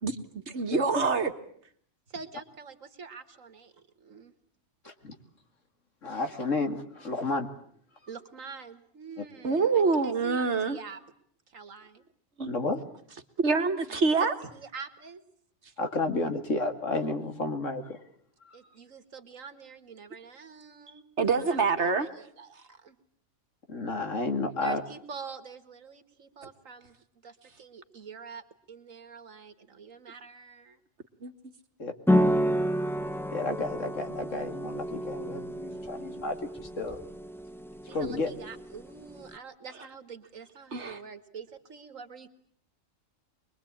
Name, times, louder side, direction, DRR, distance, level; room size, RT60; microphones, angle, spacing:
voice 1, 0.0-1.3 9.4-10.8 12.4-12.6 13.4-14.3 21.2-22.1 31.2-31.3 40.7-41.0, right 4 dB, 55° right, 8 dB, 1.9 m, -26 dB
voice 2, 2.1-4.3 8.1-11.0 11.5-12.1 13.9-15.2 18.5-23.0 24.6-27.0 27.2-30.8 37.9-42.3, right 5 dB, 75° right, 10 dB, 2.2 m, -46 dB
voice 3, 4.8-5.2 6.0-7.5 12.5-12.8 15.8-18.0 18.4-18.6 23.7-24.8 31.8-31.9 33.3-37.0 37.9-38.3, left 2 dB, 70° left, 6 dB, 2.7 m, -31 dB
sound 1, 32.1-39.4, equal, ahead, 0.8 m, -30 dB
25.0 x 22.0 x 8.6 m, 0.62 s
omnidirectional pair, 1.4 m